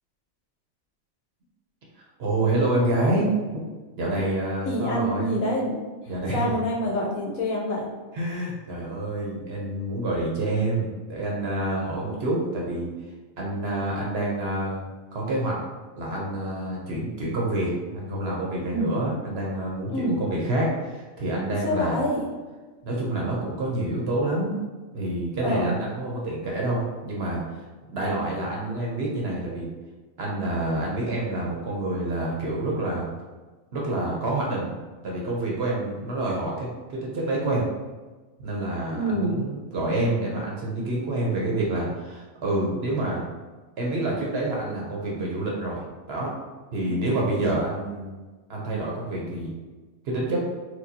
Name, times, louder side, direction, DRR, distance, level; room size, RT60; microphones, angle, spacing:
voice 1, 2.2-3.6 4.0-5.4 6.1-6.5 8.1-12.9 13.4-15.6 16.0-22.0 22.8-24.6 24.9-27.4 27.9-29.7 30.2-33.1 33.7-34.7 35.0-37.6 38.4-43.2 43.8-45.8 46.1-46.3 46.7-48.2 48.5-49.5 50.0-50.4, right 1 dB, 55° right, -3 dB, 0.9 m, -27 dB
voice 2, 4.6-5.8 6.3-7.9 18.7-18.9 19.9-20.2 21.6-22.2 25.4-25.7 38.9-39.4 46.9-47.2, equal, 85° left, -2 dB, 1.2 m, -26 dB
4.4 x 2.3 x 2.7 m, 1.3 s
omnidirectional pair, 1.4 m